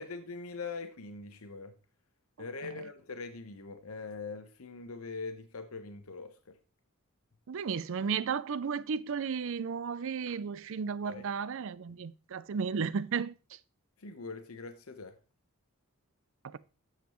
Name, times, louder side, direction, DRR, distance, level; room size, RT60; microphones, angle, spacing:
voice 1, 0.0-1.7 2.4-6.6 11.0-11.2 14.0-15.2, left 4 dB, 85° left, 1.0 m, -42 dB
voice 2, 2.4-2.8 7.5-13.6 16.4-16.6, right 6 dB, 65° right, 0.5 m, -34 dB
12.0 x 7.3 x 3.0 m
head